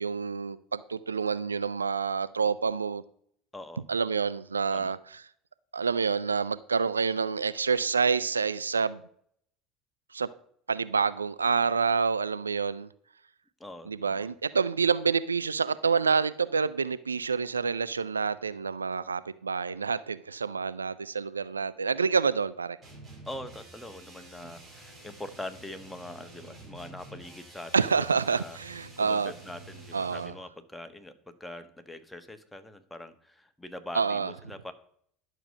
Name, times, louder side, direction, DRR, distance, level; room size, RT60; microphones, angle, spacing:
voice 1, 0.0-3.0 3.9-5.0 5.7-9.0 10.1-10.3 10.7-12.9 13.9-22.8 27.7-29.3 29.9-30.3 33.9-34.3, right 5 dB, 85° right, 0.3 m, -28 dB
voice 2, 3.5-3.8 4.7-4.9 13.6-14.3 23.3-27.7 28.3-28.6 29.0-34.7, left 1 dB, 5° left, 1.3 m, -43 dB
sound 1, 22.8-30.4, right 2 dB, 30° right, 5.2 m, -49 dB
11.0 x 6.5 x 5.4 m
figure-of-eight pair, 70°, 0 cm